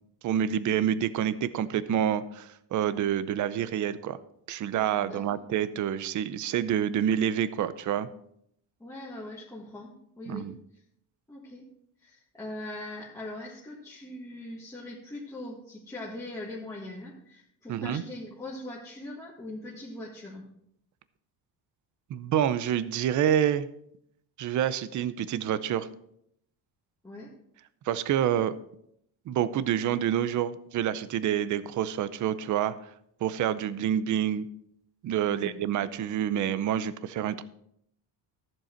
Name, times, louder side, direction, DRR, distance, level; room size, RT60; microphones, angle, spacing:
voice 1, 0.2-4.2 4.5-8.1 10.3-10.6 17.7-18.0 22.1-23.7 24.4-25.9 27.9-28.5 29.3-32.8 33.2-34.5 35.0-37.4, right 10 dB, 45° right, 15 dB, 0.6 m, -27 dB
voice 2, 5.0-5.4 8.8-10.5 11.3-11.7 12.0-20.4 27.0-27.3 35.3-35.6, left 1 dB, 10° left, -6 dB, 1.6 m, -41 dB
14.0 x 7.7 x 4.4 m, 0.73 s
cardioid pair, 170°, 41 cm